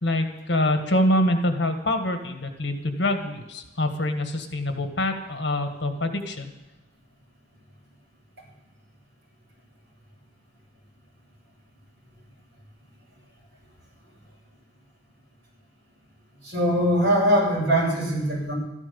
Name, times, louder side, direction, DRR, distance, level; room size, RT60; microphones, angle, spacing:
voice 1, 0.0-6.5, left 1 dB, 65° left, 5 dB, 1.7 m, -25 dB
voice 2, 16.4-18.5, equal, 55° right, -4 dB, 7.7 m, -22 dB
13.5 x 12.0 x 7.0 m, 0.99 s
head